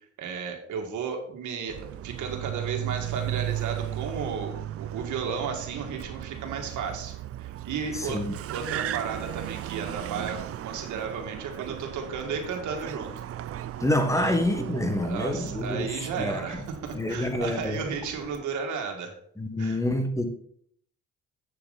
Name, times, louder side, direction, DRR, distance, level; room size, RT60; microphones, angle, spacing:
voice 1, 0.2-8.2 8.5-13.1 14.2-14.4 15.0-19.2 19.6-19.8, right 6 dB, 75° right, 2.0 m, -34 dB
Car, 1.7-18.4, right 12 dB, 50° right, 0.4 m, -36 dB
voice 2, 7.9-8.3 13.8-16.6 16.9-17.8 19.4-20.2, left 1 dB, 10° left, 1.5 m, -27 dB
8.0 x 7.1 x 4.0 m
cardioid pair, 90°, 30 cm